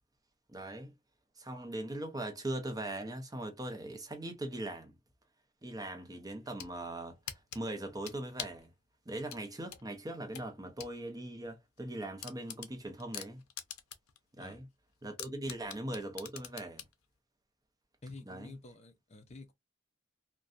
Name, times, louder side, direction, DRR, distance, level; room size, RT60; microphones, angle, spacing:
voice 1, 0.5-0.9 1.4-4.9 5.6-7.2 7.5-8.7 9.1-13.4 14.4-14.6 15.0-16.8 18.3-18.5, right 1 dB, 15° right, 0.6 m, -40 dB
sound 1, 6.3-6.7 7.3-8.7 9.3-10.9 11.3-11.4 11.8-11.9 12.2-14.2 14.5-14.6 15.2-16.9, left 10 dB, 90° left, 0.5 m, -44 dB
voice 2, 18.0-19.5, left 3 dB, 30° left, 0.6 m, -49 dB
2.6 x 2.2 x 2.4 m
head